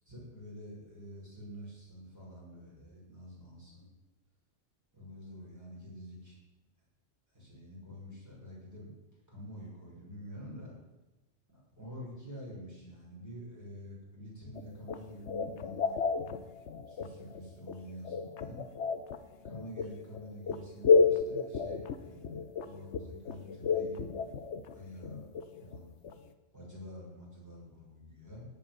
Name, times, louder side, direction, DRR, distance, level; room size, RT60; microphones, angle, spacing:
voice 1, 0.1-3.9 4.9-6.4 7.3-8.9 9.3-10.7 11.8-16.4 16.9-18.7 19.4-25.2 25.5-25.9 26.5-28.5, equal, 15° right, -6 dB, 6.5 m, -48 dB
sound 1, 14.6-26.2, left 5 dB, 90° left, 1.2 m, -31 dB
17.0 x 5.8 x 9.4 m, 1.1 s
omnidirectional pair, 1.1 m